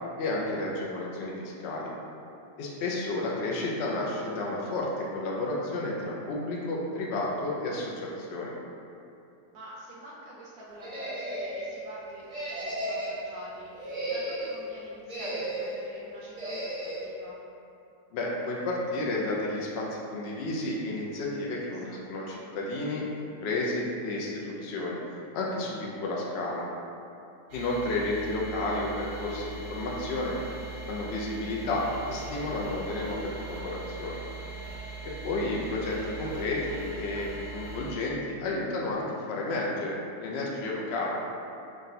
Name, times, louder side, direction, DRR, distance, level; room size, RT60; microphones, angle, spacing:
voice 1, 0.2-1.9 2.6-8.5 18.1-25.0 25.3-26.7 27.5-30.4 30.9-34.2 35.0-41.2, left 2 dB, 75° left, -3 dB, 0.6 m, -31 dB
voice 2, 9.5-17.4 21.2-22.3, right 1 dB, 70° right, -6 dB, 0.9 m, -47 dB
sound 1, 10.8-11.7 12.3-13.3 13.7-14.6 15.1-15.8 16.4-17.0, right 1 dB, 35° right, 0.7 m, -34 dB
sound 2, 27.5-37.9, right 3 dB, 85° right, 1.2 m, -41 dB
3.6 x 2.2 x 3.9 m, 2.7 s
omnidirectional pair, 1.6 m